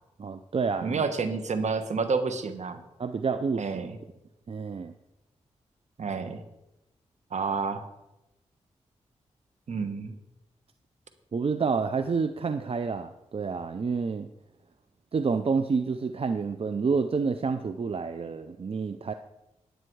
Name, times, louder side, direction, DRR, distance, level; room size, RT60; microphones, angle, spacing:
voice 1, 0.2-1.0 3.0-3.7 4.5-4.9 11.3-14.3 15.1-19.1, right 5 dB, 50° right, 9 dB, 0.6 m, -28 dB
voice 2, 0.8-2.8 3.6-4.0 6.0-6.4 7.3-7.8 9.7-10.2, right 4 dB, 65° right, 9 dB, 1.3 m, -29 dB
10.5 x 9.1 x 4.7 m, 0.92 s
cardioid pair, 50°, 13 cm